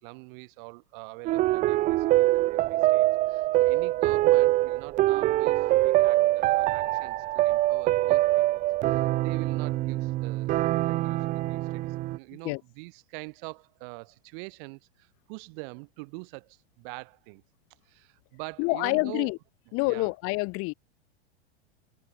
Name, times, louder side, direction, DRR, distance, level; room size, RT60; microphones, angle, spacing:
voice 1, 0.0-8.4 8.9-10.5 10.8-17.4 17.8-19.3 19.8-20.1, right 35 dB, 50° right, 4.4 m, -44 dB
sound 1, 1.3-12.2, right 17 dB, 25° right, 0.4 m, -24 dB
voice 2, 18.6-19.4 19.7-20.7, left 28 dB, 40° left, 1.4 m, -27 dB
hypercardioid pair, 110°, 33 cm